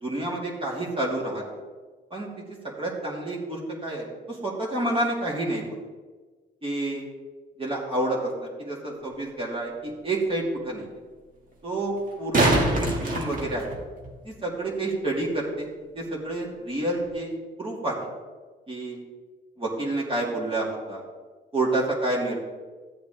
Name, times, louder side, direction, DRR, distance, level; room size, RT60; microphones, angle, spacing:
voice 1, 0.0-1.4 2.1-5.8 6.6-7.0 7.6-10.9 11.6-13.7 14.2-15.7 15.9-18.0 18.7-19.0 19.6-21.0 21.5-22.4, right 2 dB, 25° right, -4 dB, 3.0 m, -29 dB
sound 1, 9.1-9.2 12.0-14.1 17.0-17.1, right 1 dB, 45° right, 2.3 m, -24 dB
14.0 x 7.8 x 3.4 m, 1.3 s
cardioid pair, 90°, 20 cm